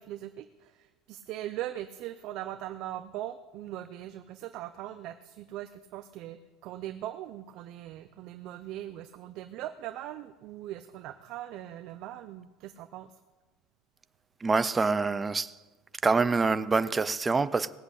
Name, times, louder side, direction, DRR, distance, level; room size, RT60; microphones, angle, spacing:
voice 1, 0.0-13.1, right 13 dB, 55° right, 0.7 m, -40 dB
voice 2, 14.4-15.5 16.0-17.7, right 4 dB, 15° right, 0.6 m, -25 dB
18.5 x 7.9 x 8.2 m
supercardioid pair, 135°, 0 cm